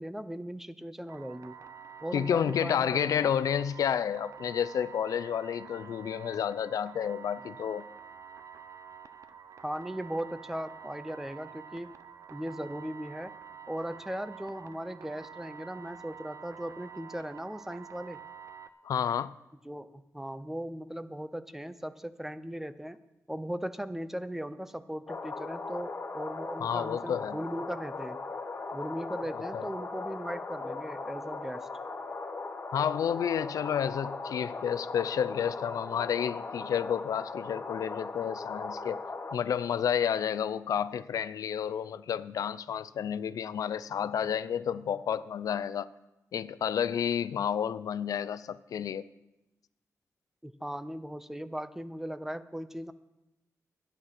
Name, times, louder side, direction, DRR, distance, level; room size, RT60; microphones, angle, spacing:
voice 1, 0.0-1.5 2.0-3.3 9.6-12.0 12.3-13.3 13.7-18.2 19.6-23.0 23.3-28.2 28.7-31.7 50.4-52.9, equal, 5° right, 13 dB, 0.5 m, -38 dB
sound 1, 1.1-18.7, right 7 dB, 60° right, 0.6 m, -48 dB
voice 2, 2.1-7.9 18.8-19.3 26.6-27.4 29.3-29.7 32.7-39.0 39.3-45.9 46.3-49.1, left 8 dB, 80° left, 16 dB, 0.4 m, -30 dB
sound 2, 25.1-39.4, left 3 dB, 40° left, 1.1 m, -39 dB
11.5 x 9.7 x 5.8 m, 0.96 s
wide cardioid pair, 125°, 6 cm